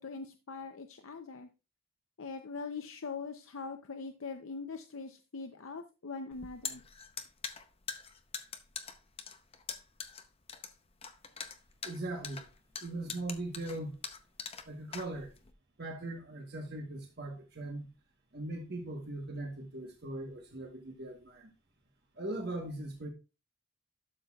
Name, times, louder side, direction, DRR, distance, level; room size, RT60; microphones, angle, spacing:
voice 1, 0.0-1.5 2.2-6.8, left 4 dB, 70° left, 0.7 m, -42 dB
sound 1, 6.3-15.5, left 6 dB, 25° left, 0.7 m, -43 dB
voice 2, 11.8-12.5 12.8-14.0 14.7-15.3 15.8-17.9 18.3-21.5 22.2-23.1, right 2 dB, 45° right, 1.2 m, -40 dB
12.0 x 6.7 x 2.4 m
head